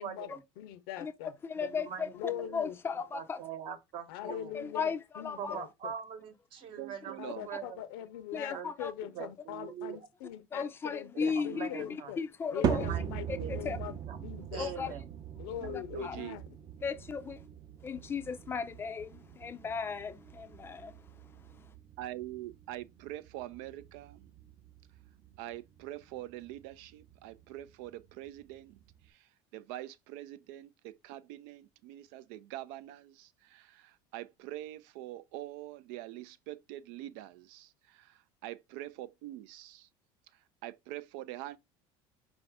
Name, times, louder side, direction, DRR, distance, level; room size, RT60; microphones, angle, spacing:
voice 1, 0.0-0.4 1.6-2.6 3.1-4.5 5.4-7.8 8.5-8.7 9.0-10.0 10.6-10.7 11.1-12.1 12.5-14.3 14.5-15.0, right 8 dB, 50° right, 1.0 m, -43 dB
voice 2, 0.6-1.3 2.1-2.8 4.1-5.9 7.2-12.2 12.5-14.9 15.4-16.4, left 12 dB, 85° left, 0.7 m, -42 dB
voice 3, 1.4-3.4 4.5-5.6 8.3-8.9 10.5-12.9 13.3-13.8 14.6-14.9 15.7-16.2 16.8-17.4 17.8-21.0, left 5 dB, 20° left, 0.4 m, -36 dB
voice 4, 6.8-7.5 15.6-16.4 22.0-24.2 25.4-28.8 29.1-38.1 38.4-39.9 40.6-41.6, right 14 dB, 75° right, 0.4 m, -44 dB
sound 1, 12.6-29.1, right 8 dB, 35° right, 0.6 m, -41 dB
4.8 x 2.6 x 3.5 m
cardioid pair, 145°, 12 cm